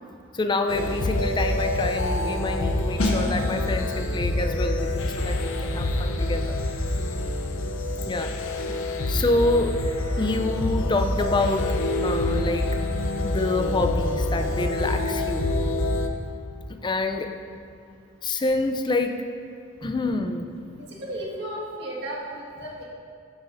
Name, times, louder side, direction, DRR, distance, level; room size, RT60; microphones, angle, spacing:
voice 1, 0.3-6.6 8.1-8.3 9.1-9.8 10.2-11.8 12.0-12.7 13.2-15.5 16.8-17.3 18.2-19.2 19.8-20.4, left 2 dB, 20° left, 6 dB, 0.4 m, -27 dB
sound 1, 0.7-16.1, left 1 dB, 65° left, 0.6 m, -26 dB
sound 2, 3.0-13.5 13.8-14.0, left 1 dB, 90° left, 1.4 m, -37 dB
voice 2, 20.7-22.8, right 1 dB, 50° right, -4 dB, 1.7 m, -35 dB
13.0 x 8.1 x 2.6 m, 2.3 s
head